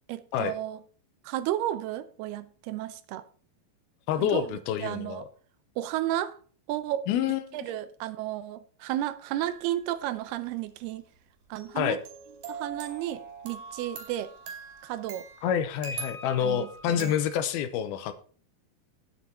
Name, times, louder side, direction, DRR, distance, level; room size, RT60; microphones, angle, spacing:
voice 1, 0.1-0.8 1.2-3.2 4.2-4.5 4.8-5.2 5.8-6.4 6.7-7.0 7.5-11.0 11.5-12.0 12.5-14.3 14.8-15.3 16.4-17.1, right 13 dB, 85° right, 2.7 m, -33 dB
voice 2, 4.1-5.2 7.1-7.6 11.8-12.0 15.4-18.1, left 9 dB, 80° left, 2.8 m, -28 dB
sound 1, 9.4-9.8 11.6-17.3, right 4 dB, 65° right, 4.1 m, -42 dB
9.8 x 9.4 x 4.3 m
omnidirectional pair, 4.5 m